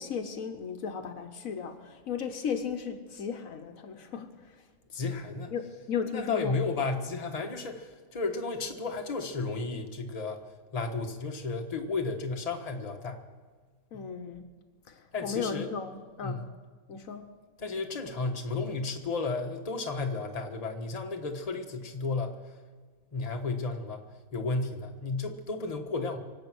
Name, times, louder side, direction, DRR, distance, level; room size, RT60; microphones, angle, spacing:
voice 1, 0.0-4.3 5.5-6.6 13.9-14.4 14.9-16.4 16.9-17.2, left 6 dB, 70° left, 7 dB, 1.4 m, -35 dB
voice 2, 4.9-5.5 6.1-10.4 10.7-13.2 13.9-14.1 15.1-15.7 16.2-16.5 17.6-22.4 23.1-24.0 24.3-26.2, left 3 dB, 30° left, 3 dB, 1.3 m, -33 dB
24.5 x 8.4 x 6.2 m, 1.5 s
omnidirectional pair, 1.5 m